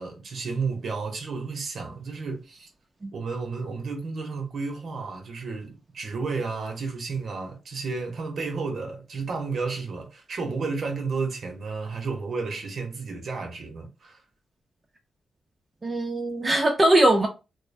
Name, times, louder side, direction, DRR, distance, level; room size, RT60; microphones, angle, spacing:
voice 1, 0.0-2.7 3.1-14.2, right 4 dB, 60° right, 0.7 m, -32 dB
voice 2, 15.8-17.3, right 1 dB, 30° right, 0.4 m, -21 dB
2.6 x 2.1 x 2.5 m
cardioid pair, 100°, 0 cm